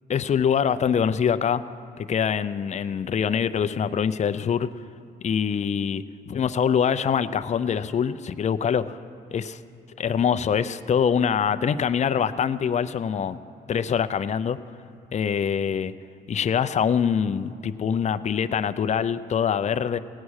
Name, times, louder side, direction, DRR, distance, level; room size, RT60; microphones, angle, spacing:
voice 1, 0.1-1.6 2.0-4.7 5.2-9.0 9.3-9.6 10.0-13.4 13.7-14.6 15.1-15.9 16.3-20.0, left 7 dB, 35° left, 12 dB, 0.5 m, -24 dB
17.0 x 8.4 x 6.4 m, 2.5 s
cardioid pair, 90°, 20 cm